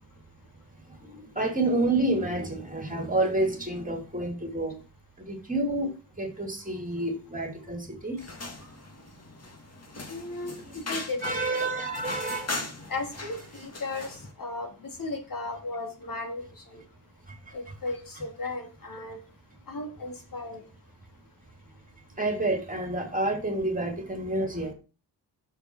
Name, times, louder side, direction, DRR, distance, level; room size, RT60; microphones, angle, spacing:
voice 1, 1.0-4.8 5.3-5.9 6.2-8.2 11.2-12.5 17.3-17.4 22.2-24.7, right 2 dB, 20° right, 4 dB, 3.0 m, -29 dB
sound 1, 8.2-14.3, left 2 dB, 40° left, 2.4 m, -39 dB
voice 2, 10.1-11.2 11.7-12.0 12.9-16.4 16.7-16.8 17.5-19.2 19.7-20.7, left 3 dB, 55° left, 2 dB, 3.2 m, -36 dB
7.0 x 6.8 x 6.4 m, 0.33 s
cardioid pair, 85°, 39 cm